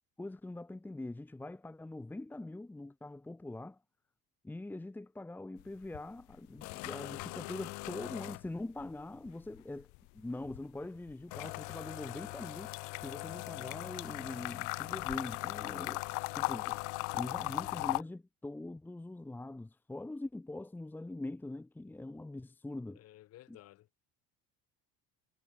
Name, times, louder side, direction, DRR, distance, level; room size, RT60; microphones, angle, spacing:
voice 1, 0.2-3.8 4.4-16.0 16.3-16.8 17.1-23.0 23.5-23.6, left 2 dB, 5° left, 1.0 m, -43 dB
sound 1, 5.6-6.0 6.3-8.9 9.2-18.0, left 30 dB, 75° left, 1.2 m, -39 dB
voice 2, 22.9-24.0, left 14 dB, 55° left, 4.1 m, -56 dB
cardioid pair, 135°, 30 cm